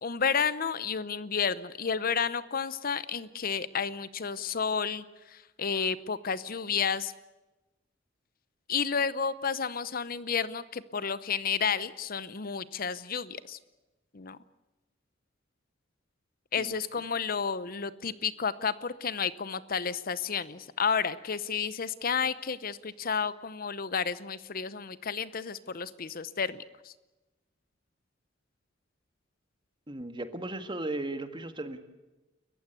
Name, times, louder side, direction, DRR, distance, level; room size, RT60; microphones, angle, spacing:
voice 1, 0.0-7.1 8.7-13.6 14.1-14.4 16.5-26.9, left 6 dB, 50° left, 16 dB, 0.8 m, -31 dB
voice 2, 29.9-31.8, right 2 dB, 25° right, 9 dB, 1.8 m, -36 dB
30.0 x 15.0 x 8.2 m, 1.1 s
head